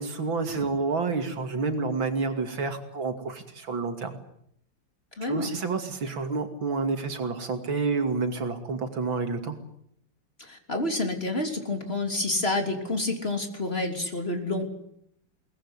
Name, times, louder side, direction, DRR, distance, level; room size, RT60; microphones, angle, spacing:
voice 1, 0.0-4.1 5.2-9.6, right 4 dB, 75° right, 7 dB, 3.3 m, -29 dB
voice 2, 5.2-5.5 10.4-14.7, left 2 dB, 30° left, 5 dB, 3.6 m, -29 dB
23.0 x 19.5 x 9.9 m, 0.72 s
omnidirectional pair, 2.1 m